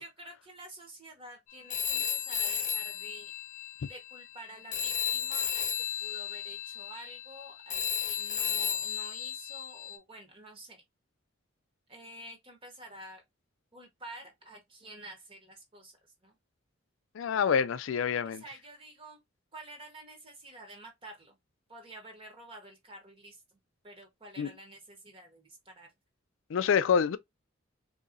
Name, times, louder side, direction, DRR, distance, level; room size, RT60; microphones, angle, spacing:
voice 1, 0.0-3.3 3.9-5.7 6.0-10.8 11.9-13.2 13.7-16.0 16.2-16.3 18.2-19.2 19.5-21.4 21.7-23.6 23.8-25.9, right 1 dB, 25° right, 1.0 m, -49 dB
Telephone, 1.7-4.4 4.7-10.0, left 8 dB, 35° left, 0.8 m, -34 dB
voice 2, 17.2-18.4 24.4-24.5 26.5-27.2, left 7 dB, 70° left, 0.3 m, -27 dB
3.9 x 2.8 x 2.5 m
head